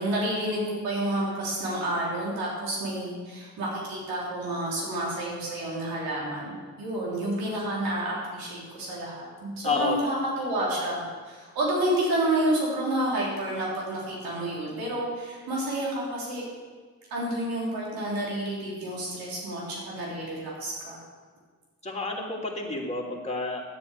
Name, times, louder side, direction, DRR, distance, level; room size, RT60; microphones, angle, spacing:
voice 1, 0.0-6.5 6.8-16.4 17.1-21.0, right 1 dB, 85° right, -4 dB, 3.5 m, -29 dB
voice 2, 9.6-10.0 21.8-23.6, left 3 dB, 20° left, -3 dB, 2.9 m, -29 dB
10.5 x 8.3 x 6.8 m, 1.5 s
supercardioid pair, 55°, 35 cm